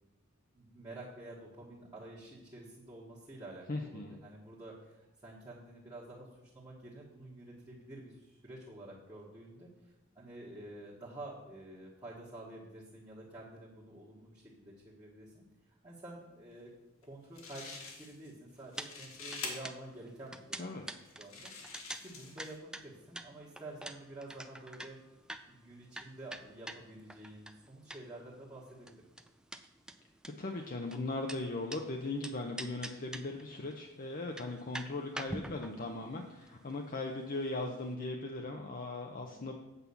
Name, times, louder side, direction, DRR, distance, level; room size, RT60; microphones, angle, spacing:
voice 1, 0.5-16.7 17.0-21.5 22.0-25.0 25.5-28.9, right 1 dB, 20° right, -7 dB, 1.6 m, -49 dB
voice 2, 3.7-4.2 20.6-20.9 30.4-39.6, left 2 dB, 40° left, 2 dB, 0.8 m, -38 dB
sound 1, 17.0-17.1 17.3-18.3 18.6-19.5 20.3-20.4 21.0-22.6, left 4 dB, 90° left, 1.8 m, -45 dB
sound 2, 18.8-18.9 19.2-28.3 28.5-31.8 32.2-33.4 33.7-33.8 34.2-37.6 37.9-38.0, right 1 dB, 5° right, 0.4 m, -45 dB
8.2 x 5.5 x 7.1 m, 1.0 s
head